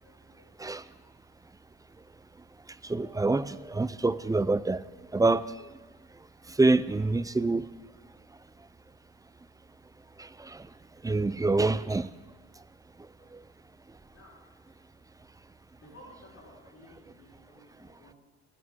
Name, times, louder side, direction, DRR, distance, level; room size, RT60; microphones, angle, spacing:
voice 1, 0.0-0.5 13.2-13.3 14.1-14.4 14.6-14.8 15.8-18.1, left 1 dB, 55° left, -5 dB, 4.1 m, -55 dB
voice 2, 2.8-4.8 5.1-5.7 6.5-7.7 10.2-10.7 11.0-12.1, right 3 dB, 10° right, 16 dB, 0.4 m, -26 dB
20.5 x 9.6 x 3.7 m, 1.3 s
cardioid pair, 90°, 30 cm